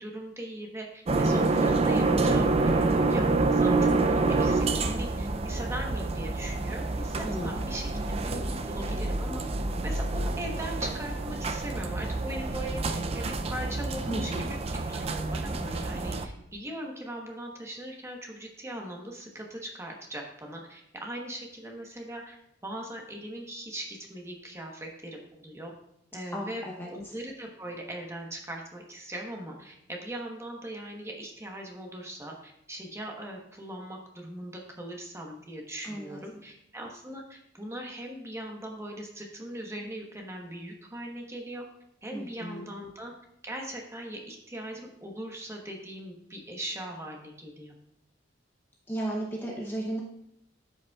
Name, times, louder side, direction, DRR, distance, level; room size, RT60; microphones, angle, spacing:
voice 1, 0.0-7.9 8.2-9.4 9.8-14.6 14.9-22.4 22.6-25.7 26.1-26.6 26.9-41.6 42.0-43.1 43.4-47.7, right 1 dB, 15° right, 0 dB, 1.1 m, -40 dB
sound 1, 1.1-16.3, right 3 dB, 35° right, 0.4 m, -27 dB
voice 2, 7.2-7.6 14.0-14.5 26.3-27.1 35.8-36.4 42.1-42.7 48.9-50.0, right 1 dB, 10° left, -2 dB, 0.8 m, -35 dB
12.5 x 5.2 x 2.4 m, 0.77 s
head